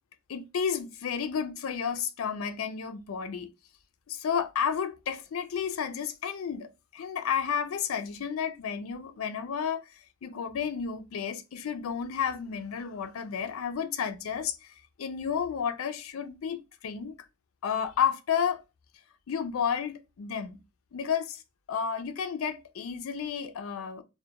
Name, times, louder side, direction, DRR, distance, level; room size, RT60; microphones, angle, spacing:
voice 1, 0.3-3.5 4.1-9.8 10.2-17.1 17.6-18.6 19.3-20.6 20.9-21.4 21.7-24.0, left 7 dB, 90° left, 0.4 m, -31 dB
2.2 x 2.1 x 2.7 m
head